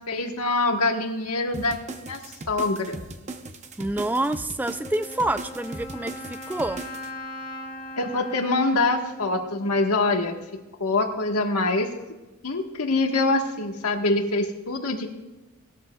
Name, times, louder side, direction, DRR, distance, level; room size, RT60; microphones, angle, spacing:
voice 1, 0.1-2.2 2.5-3.0 8.0-11.9 12.4-15.1, left 2 dB, 90° left, 3 dB, 1.5 m, -25 dB
sound 1, 1.5-7.1, right 2 dB, 30° right, 0.8 m, -39 dB
voice 2, 3.8-6.8, right 1 dB, 10° right, 12 dB, 0.3 m, -27 dB
Wind instrument woodwind instrument, 4.8-10.5, left 2 dB, 40° left, 1.3 m, -40 dB
18.5 x 13.5 x 2.4 m, 1.1 s
head